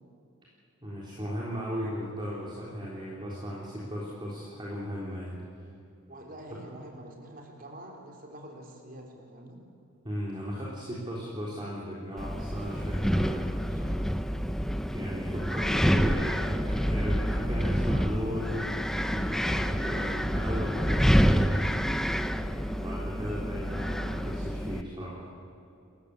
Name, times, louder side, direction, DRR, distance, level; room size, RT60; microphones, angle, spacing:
voice 1, 0.8-5.4 10.0-14.1 14.9-21.7 22.8-25.3, equal, 20° right, -5 dB, 3.7 m, -36 dB
voice 2, 6.1-9.6 22.4-22.8, right 1 dB, 40° right, 2 dB, 3.9 m, -46 dB
Wind, 12.2-24.8, equal, ahead, 0.6 m, -28 dB
30.0 x 14.5 x 8.4 m, 2.8 s
head